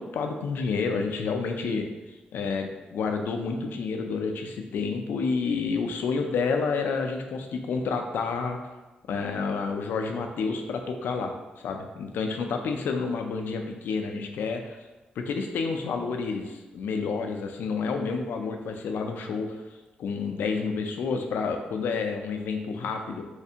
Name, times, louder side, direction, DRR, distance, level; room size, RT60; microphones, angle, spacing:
voice 1, 0.0-1.9 2.3-8.7 9.1-14.8 15.2-19.6 20.0-23.2, left 4 dB, 85° left, 4 dB, 0.4 m, -29 dB
3.3 x 3.2 x 2.8 m, 1.1 s
wide cardioid pair, 155°, 3 cm